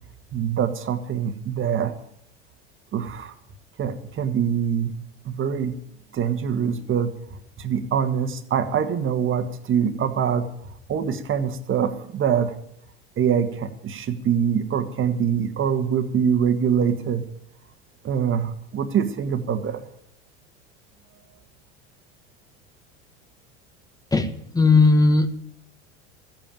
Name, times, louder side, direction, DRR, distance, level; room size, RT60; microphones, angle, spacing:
voice 1, 0.3-1.9 2.9-3.3 3.8-4.9 5.2-5.8 6.1-10.5 10.9-12.5 13.2-17.3 18.0-19.8, right 8 dB, 35° right, 8 dB, 1.6 m, -24 dB
voice 2, 24.1-25.3, left 3 dB, 10° left, 9 dB, 1.4 m, -17 dB
14.0 x 8.7 x 9.1 m, 0.72 s
hypercardioid pair, 95°, 34 cm